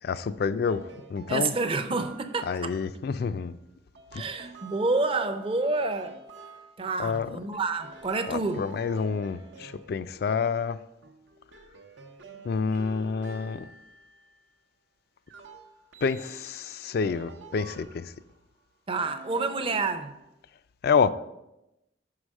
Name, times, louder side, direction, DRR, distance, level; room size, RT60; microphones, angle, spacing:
voice 1, 0.0-1.5 2.4-3.6 4.1-4.2 7.0-7.4 8.3-10.8 12.4-13.6 16.0-18.1 20.8-21.1, left 5 dB, 55° left, 0.3 m, -28 dB
sound 1, 0.7-2.6 4.0-7.1 7.5-10.6 11.0-14.6 15.3-18.4 18.9-20.4, right 3 dB, 85° right, 0.8 m, -49 dB
voice 2, 1.3-2.7 4.1-6.1 6.8-8.7 18.9-20.1, right 3 dB, 30° right, 0.5 m, -28 dB
6.0 x 4.8 x 6.3 m
head